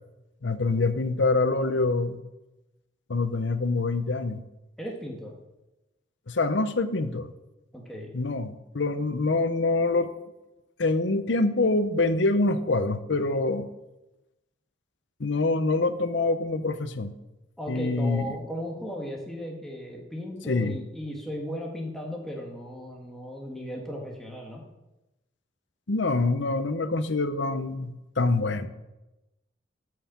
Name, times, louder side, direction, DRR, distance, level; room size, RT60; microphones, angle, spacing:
voice 1, 0.4-2.2 3.1-4.4 6.3-7.3 8.1-10.1 10.8-13.7 15.2-17.1 17.7-18.3 20.5-20.8 25.9-28.7, left 3 dB, 70° left, 11 dB, 0.8 m, -25 dB
voice 2, 4.8-5.3 7.7-8.1 17.6-24.6, equal, ahead, -1 dB, 1.8 m, -36 dB
9.5 x 6.7 x 7.0 m, 0.99 s
head